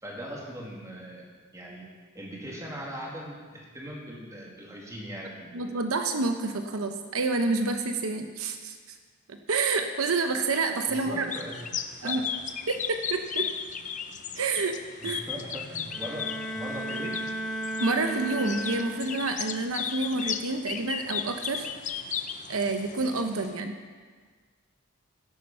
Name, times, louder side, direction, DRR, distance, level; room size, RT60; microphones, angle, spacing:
voice 1, 0.0-1.3 1.5-1.9 2.1-5.6 10.9-11.7 12.0-12.1 15.0-17.1, equal, 15° right, -3 dB, 2.5 m, -40 dB
voice 2, 5.5-8.8 9.3-11.3 12.0-12.2 12.7-13.5 14.4-14.8 15.0-15.2 17.8-21.7 22.5-23.8, right 3 dB, 85° right, 6 dB, 0.9 m, -28 dB
sound 1, 11.3-23.5, left 7 dB, 35° left, 0.6 m, -36 dB
Bowed string instrument, 15.9-19.4, right 1 dB, ahead, 1.0 m, -34 dB
14.0 x 8.7 x 5.6 m, 1.5 s
head